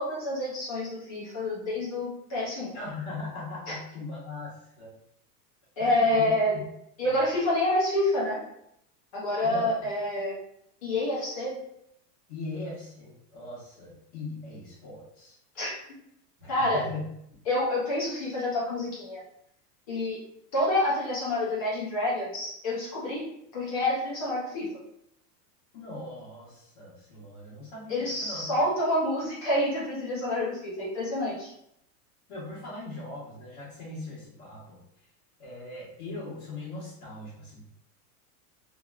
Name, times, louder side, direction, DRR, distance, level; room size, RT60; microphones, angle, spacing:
voice 1, 0.0-2.7 3.7-3.8 5.8-6.5 7.0-8.4 9.1-10.3 10.8-11.5 15.6-15.8 16.5-16.8 17.5-19.2 19.9-20.2 20.5-23.2 23.5-24.7 27.9-31.5, left 1 dB, 25° left, -6 dB, 0.4 m, -28 dB
voice 2, 2.7-4.9 5.8-6.3 7.0-7.1 9.4-9.7 12.3-15.4 16.4-17.0 25.7-28.5 32.3-34.8 35.4-37.7, left 2 dB, 45° left, -12 dB, 1.2 m, -40 dB
2.9 x 2.7 x 2.3 m, 0.75 s
supercardioid pair, 175°, 49 cm